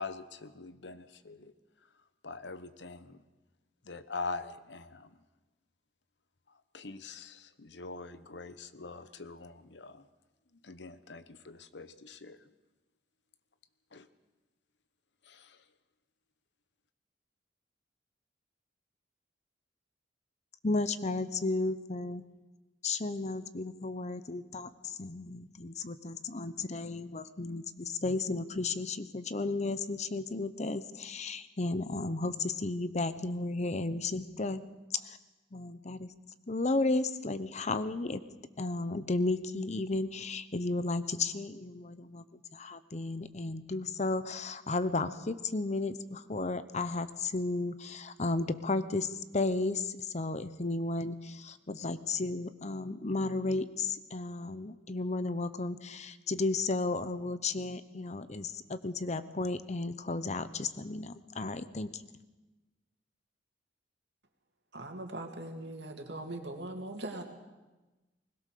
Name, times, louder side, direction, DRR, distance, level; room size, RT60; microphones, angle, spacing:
voice 1, 0.0-1.5 2.2-3.2 3.8-5.2 6.7-10.1 10.5-12.4 13.9-14.1 15.2-15.6, left 4 dB, 75° left, 12 dB, 1.1 m, -43 dB
voice 2, 20.6-22.2 22.8-34.6 35.0-35.2 35.5-36.1 36.5-38.2 38.6-42.2 42.5-62.0, left 3 dB, 40° left, 13 dB, 0.9 m, -33 dB
voice 3, 64.7-67.2, right 2 dB, 70° right, 3 dB, 2.7 m, -40 dB
20.5 x 20.5 x 6.7 m, 1.1 s
head